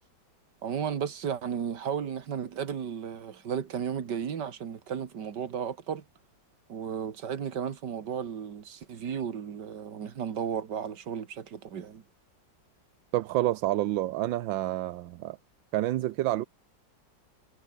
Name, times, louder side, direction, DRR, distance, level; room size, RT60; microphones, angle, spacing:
voice 1, 0.6-6.0 6.7-12.0, right 7 dB, 65° right, 2.3 m, -34 dB
voice 2, 13.1-15.4 15.7-16.4, right 15 dB, 80° right, 1.5 m, -28 dB
omnidirectional pair, 2.1 m